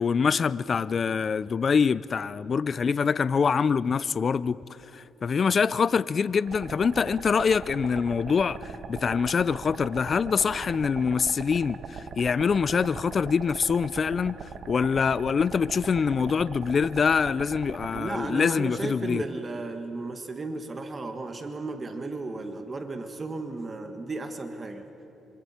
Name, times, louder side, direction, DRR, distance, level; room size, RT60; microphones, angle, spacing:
voice 1, 0.0-4.6 4.9-19.2, left 6 dB, 45° left, 0.4 m, -25 dB
sound 1, 6.5-18.0, right 6 dB, 60° right, 1.3 m, -40 dB
voice 2, 17.9-24.8, right 3 dB, 30° right, 1.6 m, -34 dB
26.0 x 25.0 x 4.4 m
cardioid pair, 90°, 0 cm